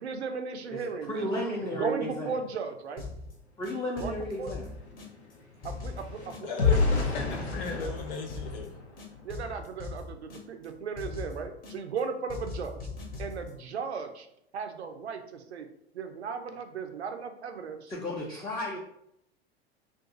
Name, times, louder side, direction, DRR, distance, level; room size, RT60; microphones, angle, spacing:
voice 1, 0.0-1.3 1.6-3.0 4.0-4.5 5.6-6.8 9.2-12.8 13.2-14.3 14.5-15.7 15.9-17.9, right 5 dB, 80° right, 6 dB, 0.6 m, -36 dB
voice 2, 1.1-2.4 3.6-4.7 17.9-18.8, left 1 dB, 10° left, -4 dB, 0.6 m, -33 dB
sound 1, 3.0-3.3 3.6-5.3 5.6-6.7 7.0-8.7 9.0-10.7 11.0-12.0 12.3-13.5, left 3 dB, 30° left, 0.9 m, -40 dB
sound 2, 3.6-3.7 4.0-9.5 10.0-10.2 10.6-10.8, left 4 dB, 90° left, 0.7 m, -31 dB
voice 3, 6.4-8.7, left 4 dB, 60° left, 4 dB, 0.8 m, -37 dB
2.6 x 2.5 x 3.7 m, 0.76 s
figure-of-eight pair, 90°, 32 cm